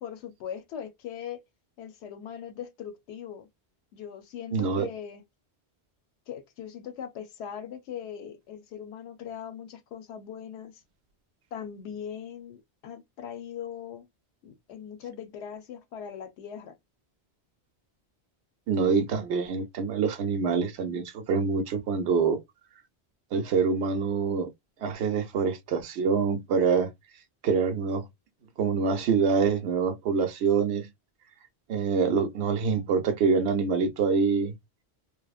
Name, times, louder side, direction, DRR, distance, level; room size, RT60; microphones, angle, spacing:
voice 1, 0.0-1.4 1.8-3.5 3.9-5.2 6.3-10.8 11.5-14.1 14.4-16.8, left 8 dB, 85° left, 0.9 m, -40 dB
voice 2, 4.5-4.9 18.7-22.4 23.3-24.5 24.8-26.9 27.4-28.1 28.6-30.9 31.7-34.5, right 5 dB, 80° right, 0.9 m, -25 dB
2.9 x 2.0 x 2.3 m
omnidirectional pair, 1.1 m